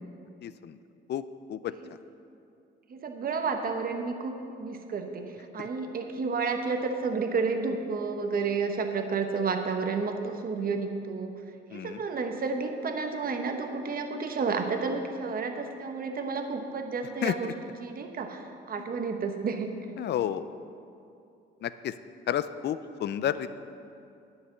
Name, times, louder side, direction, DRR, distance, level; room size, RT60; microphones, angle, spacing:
voice 1, 0.4-0.8 1.1-1.2 1.5-1.7 5.6-5.7 11.7-12.0 17.2-17.3 20.0-20.5 21.6-21.9 22.3-23.5, left 10 dB, 60° left, 14 dB, 0.5 m, -30 dB
voice 2, 2.9-11.3 11.7-17.5 17.8-19.7, right 4 dB, 45° right, 5 dB, 1.1 m, -31 dB
9.7 x 5.7 x 7.7 m, 2.6 s
cardioid pair, 90°, 20 cm